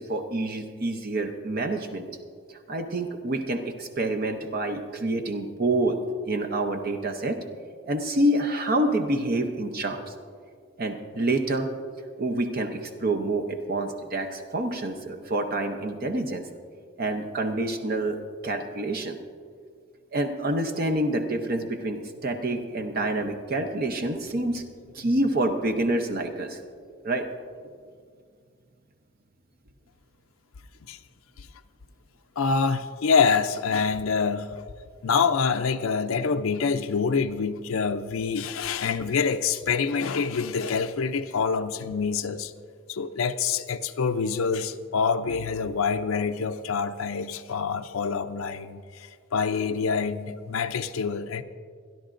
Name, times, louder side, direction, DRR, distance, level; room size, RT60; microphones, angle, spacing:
voice 1, 0.0-2.1 2.7-6.0 6.3-7.4 7.9-10.1 10.8-11.7 12.2-16.4 17.0-19.2 20.1-24.6 24.9-26.6 27.0-27.3, right 1 dB, 45° right, 0.7 m, -27 dB
voice 2, 32.4-34.6 35.0-42.5 42.9-51.4, left 5 dB, 90° left, 0.5 m, -26 dB
25.5 x 11.0 x 2.5 m
head